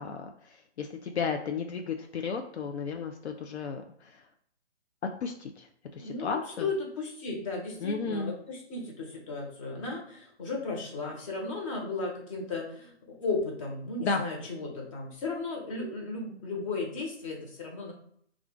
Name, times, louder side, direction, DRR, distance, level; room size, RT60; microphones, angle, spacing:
voice 1, 0.0-4.2 5.2-5.7 5.9-6.7 7.8-8.3 14.0-14.2, left 5 dB, 70° left, 4 dB, 0.5 m, -33 dB
voice 2, 6.0-12.9 13.2-17.9, left 3 dB, 30° left, -2 dB, 0.9 m, -35 dB
2.4 x 2.4 x 3.6 m, 0.65 s
hypercardioid pair, 155°, 35 cm